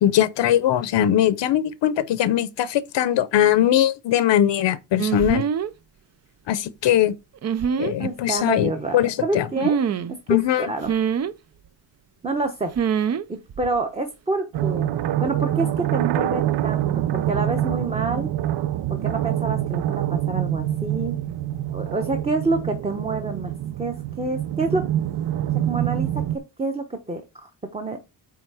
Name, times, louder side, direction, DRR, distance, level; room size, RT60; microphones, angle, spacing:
voice 1, 0.0-5.4 6.5-7.1 7.8-9.5 10.3-10.7, left 11 dB, 80° left, 0.8 m, -20 dB
sound 1, 5.0-5.7 7.4-7.9 9.6-10.1 10.8-11.3 12.7-13.2 13.5-13.8, right 7 dB, 40° right, 0.4 m, -24 dB
voice 2, 8.0-9.8 10.1-10.9 12.2-12.7 13.3-14.9 15.2-18.3 18.9-21.2 21.7-23.5 23.8-24.9 25.5-28.0, right 3 dB, 15° right, 0.9 m, -27 dB
sound 2, 14.5-26.4, right 12 dB, 75° right, 0.7 m, -25 dB
8.6 x 3.5 x 4.9 m
wide cardioid pair, 155°, 42 cm